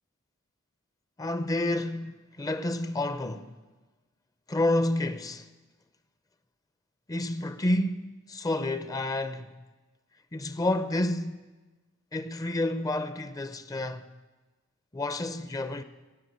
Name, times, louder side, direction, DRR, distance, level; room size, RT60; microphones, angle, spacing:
voice 1, 1.2-3.5 4.5-5.5 7.1-9.5 10.3-11.5 12.1-14.1 14.9-15.8, left 1 dB, 15° left, 0.5 m, -29 dB
17.5 x 6.7 x 8.8 m
head